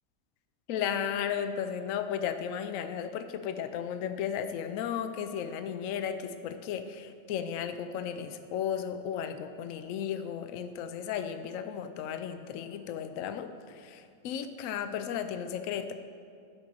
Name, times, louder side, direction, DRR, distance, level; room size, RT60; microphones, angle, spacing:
voice 1, 0.7-15.9, left 8 dB, 75° left, 9 dB, 0.9 m, -34 dB
12.0 x 5.4 x 6.4 m, 2.3 s
omnidirectional pair, 1.5 m